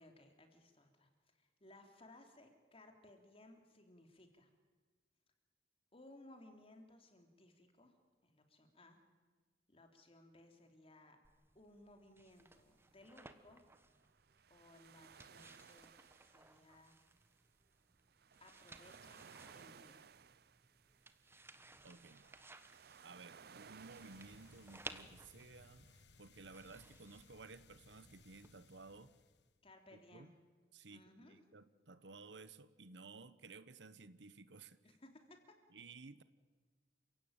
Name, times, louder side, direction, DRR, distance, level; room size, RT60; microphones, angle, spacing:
voice 1, 0.0-4.5 5.9-8.0 8.2-9.0 9.7-11.2 11.6-13.6 14.5-17.0 18.4-19.2 19.5-20.1 29.6-30.4 30.9-31.4 34.8-35.6, left 1 dB, 35° left, 5 dB, 3.4 m, -62 dB
sound 1, 11.2-28.5, right 2 dB, 15° right, 1.2 m, -59 dB
sound 2, 12.3-26.0, right 6 dB, 60° right, 0.6 m, -62 dB
voice 2, 21.8-22.3 23.0-25.9 26.2-29.1 29.9-30.3 30.7-34.8 35.7-36.2, right 3 dB, 90° right, 15 dB, 1.1 m, -56 dB
sound 3, 23.7-29.6, left 3 dB, 70° left, 1.4 m, -65 dB
29.5 x 16.5 x 9.1 m, 1.4 s
head